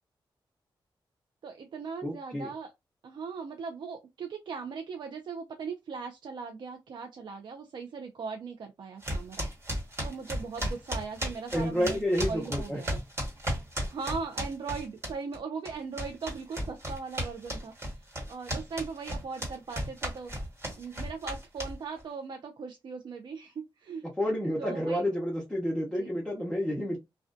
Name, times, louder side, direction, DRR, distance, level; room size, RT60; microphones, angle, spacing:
voice 1, 1.4-2.7 3.0-9.5 10.0-12.0 12.3-13.0 13.9-20.3 20.8-24.0 24.6-25.0 26.0-26.1, right 5 dB, 60° right, 0.4 m, -39 dB
voice 2, 2.0-2.5 11.5-12.8 24.2-27.0, equal, 5° left, 0.7 m, -30 dB
sound 1, 9.0-15.4 15.6-22.0, equal, 30° right, 1.3 m, -34 dB
2.4 x 2.1 x 2.5 m
wide cardioid pair, 145°, 9 cm